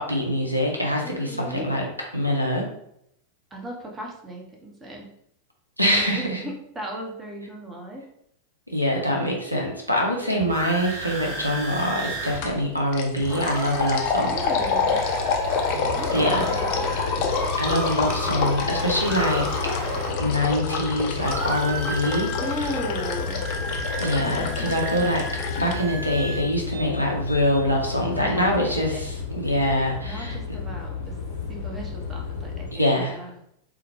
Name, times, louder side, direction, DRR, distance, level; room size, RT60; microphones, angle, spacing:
voice 1, 0.0-1.9 2.1-2.6 5.8-6.4 8.7-14.3 16.1-16.6 17.6-19.5 20.2-22.3 24.0-25.3 25.6-30.4 32.7-33.2, left 1 dB, 90° right, 0 dB, 0.6 m, -24 dB
voice 2, 1.0-1.6 3.5-5.1 5.8-8.1 14.2-15.0 16.0-16.9 22.4-23.4 28.2-29.0 30.0-31.2 31.5-33.3, equal, 15° right, 0 dB, 0.7 m, -36 dB
sound 1, 10.1-12.4 12.7-12.8 13.0-20.9 21.2-26.4, right 1 dB, 40° right, 1.2 m, -34 dB
sound 2, 12.4-12.6 12.9-25.8, left 5 dB, 40° left, 0.5 m, -28 dB
sound 3, 13.4-32.7, left 4 dB, 70° left, 0.8 m, -33 dB
3.7 x 2.1 x 2.9 m, 0.74 s
figure-of-eight pair, 90°, 0 cm